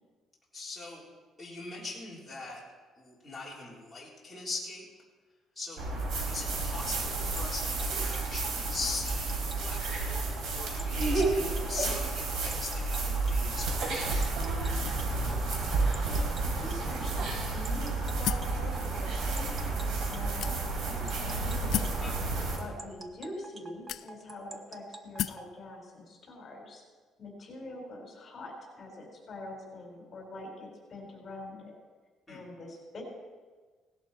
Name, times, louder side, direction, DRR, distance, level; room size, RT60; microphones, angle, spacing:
voice 1, 0.5-1.0 1.4-2.6 3.0-4.9 5.6-5.8 6.3-14.3 22.0-22.2 32.3-32.4, left 3 dB, 5° left, -7 dB, 3.9 m, -41 dB
sound 1, 5.8-22.6, right 3 dB, 75° right, 4.2 m, -31 dB
sound 2, 6.7-25.5, right 2 dB, 25° right, 1.1 m, -47 dB
voice 2, 15.9-21.6 22.6-26.8 27.2-31.7 32.3-33.0, left 1 dB, 35° left, 0 dB, 4.4 m, -44 dB
sound 3, 18.2-18.6 19.4-19.5 20.4-20.9 21.7-22.0 23.0-23.1 23.9-24.4 25.2-25.5, left 12 dB, 65° left, 0.3 m, -33 dB
18.0 x 11.5 x 4.3 m, 1.4 s
cardioid pair, 130°, 0 cm